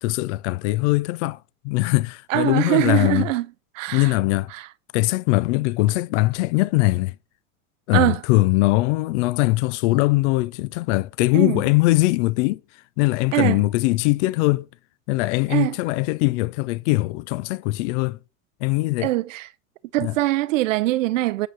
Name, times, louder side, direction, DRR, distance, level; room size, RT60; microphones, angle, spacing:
voice 1, 0.0-1.4 1.6-3.3 3.9-4.5 4.9-7.1 7.9-12.6 13.0-14.7 15.1-18.2 18.6-19.1 20.0-20.1, left 20 dB, 60° left, 0.5 m, -21 dB
voice 2, 2.3-3.5 3.7-4.2 4.5-4.7 7.9-8.2 11.3-11.6 13.3-13.6 15.5-15.7 19.0-19.5 19.9-21.5, right 17 dB, 75° right, 0.5 m, -22 dB
8.9 x 4.9 x 5.5 m
hypercardioid pair, 100°, 39 cm